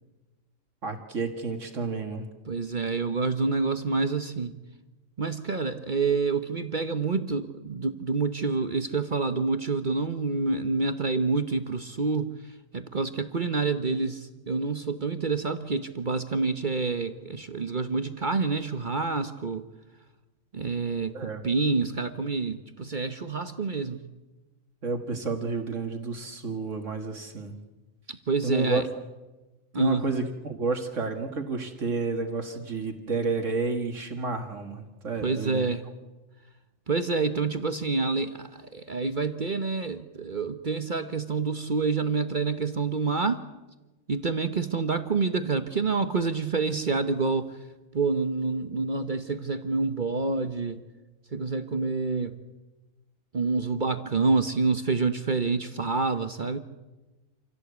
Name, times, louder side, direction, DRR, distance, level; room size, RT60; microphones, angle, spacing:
voice 1, 0.8-2.3 21.1-21.4 24.8-27.5 28.4-28.8 29.8-35.6, right 4 dB, 65° right, 5 dB, 2.3 m, -30 dB
voice 2, 2.5-4.5 5.2-12.3 12.7-19.7 20.5-24.0 28.1-28.9 29.7-30.0 35.2-35.9 36.9-43.4 44.1-47.5 47.9-50.8 51.3-52.4 53.3-56.6, right 4 dB, 40° right, 9 dB, 1.1 m, -27 dB
27.5 x 16.5 x 8.2 m, 1.1 s
omnidirectional pair, 1.4 m